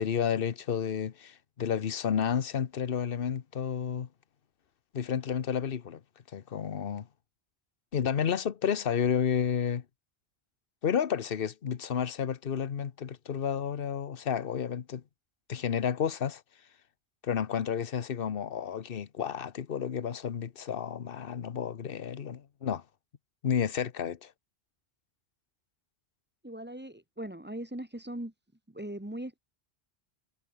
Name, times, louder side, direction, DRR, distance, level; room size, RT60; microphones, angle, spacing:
voice 1, 0.0-4.1 4.9-6.0 6.3-7.1 7.9-9.8 10.8-15.0 15.5-16.4 17.2-22.8 23.4-24.3, left 8 dB, 60° left, 1.1 m, -31 dB
voice 2, 26.4-28.3 28.7-29.4, right 1 dB, 10° right, 1.6 m, -39 dB
omnidirectional pair, 1.1 m